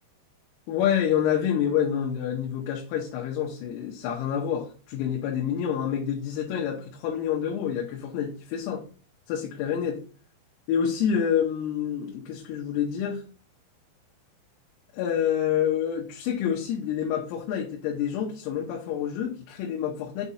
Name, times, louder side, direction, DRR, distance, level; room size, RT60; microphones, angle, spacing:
voice 1, 0.7-8.8 9.3-10.0 10.7-13.2 14.9-20.3, left 9 dB, 85° left, -1 dB, 3.7 m, -27 dB
8.1 x 2.7 x 5.7 m, 0.39 s
omnidirectional pair, 5.9 m